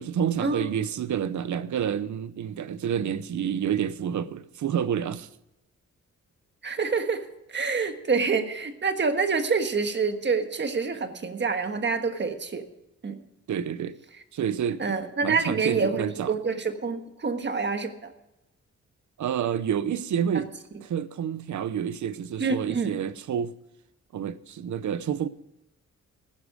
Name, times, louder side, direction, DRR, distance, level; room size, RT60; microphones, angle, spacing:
voice 1, 0.0-5.3 13.5-14.0 14.3-15.0 15.2-16.4 19.2-20.5 20.8-23.5 24.1-25.3, right 8 dB, 80° right, 0.8 m, -29 dB
voice 2, 6.6-12.6 13.0-13.2 14.8-18.1 20.3-20.4 22.4-23.0, right 4 dB, 40° right, 1.5 m, -27 dB
15.0 x 11.5 x 4.9 m
wide cardioid pair, 135°, 29 cm